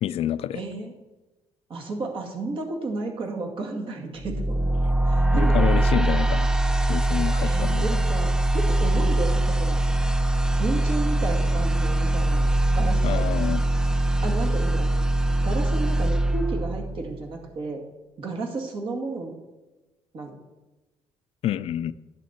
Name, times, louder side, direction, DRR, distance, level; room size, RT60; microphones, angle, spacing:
voice 1, 0.0-0.6 5.3-6.5 6.9-8.0 13.0-13.6 21.4-21.9, left 11 dB, 65° left, 15 dB, 0.4 m, -28 dB
voice 2, 0.5-0.9 1.7-4.6 5.1-5.7 7.4-9.8 10.6-13.3 14.2-14.9 15.4-17.8 18.2-19.3 20.1-20.4, right 3 dB, 55° right, 1 dB, 2.2 m, -32 dB
sound 1, 4.2-17.3, right 1 dB, 5° right, 0.5 m, -22 dB
10.5 x 7.7 x 4.3 m, 1.1 s
cardioid pair, 100°, 11 cm